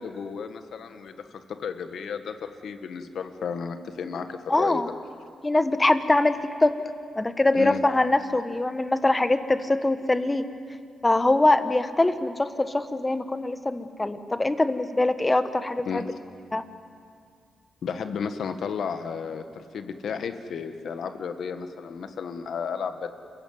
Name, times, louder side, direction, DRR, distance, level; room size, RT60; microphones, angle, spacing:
voice 1, 0.0-4.8 7.5-7.8 15.9-16.0 17.8-23.1, left 6 dB, 70° left, 8 dB, 1.5 m, -33 dB
voice 2, 4.5-4.9 5.4-6.8 7.1-10.5 11.0-16.1 16.5-16.6, left 2 dB, 20° left, 10 dB, 1.2 m, -23 dB
28.0 x 15.5 x 9.4 m, 2.3 s
cardioid pair, 85°, 0 cm